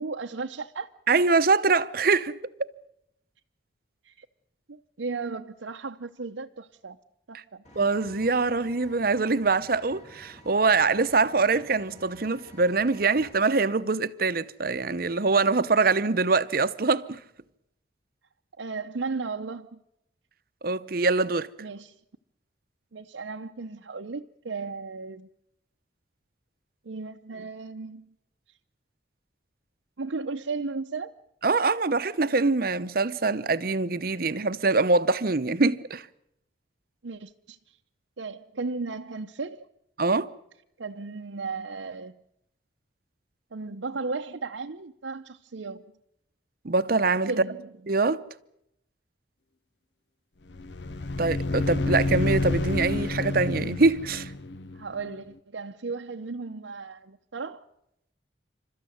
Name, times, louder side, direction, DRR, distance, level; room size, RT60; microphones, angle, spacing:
voice 1, 0.0-0.9 4.0-4.3 4.7-7.0 7.3-7.6 18.6-19.8 21.6-21.9 22.9-25.3 26.8-28.1 30.0-31.1 37.0-37.8 38.2-39.7 40.8-42.2 43.5-45.9 47.3-47.7 54.7-57.6, right 4 dB, 90° right, 0.8 m, -35 dB
voice 2, 1.1-2.7 7.8-17.2 20.6-21.5 31.4-36.1 40.0-40.3 46.6-47.3 47.9-48.2 51.2-54.3, right 3 dB, 50° right, 0.8 m, -24 dB
Vehicle, 7.6-13.3, equal, 40° left, 4.4 m, -51 dB
sound 1, 50.5-55.1, left 2 dB, 70° left, 0.9 m, -29 dB
28.5 x 13.5 x 9.3 m
head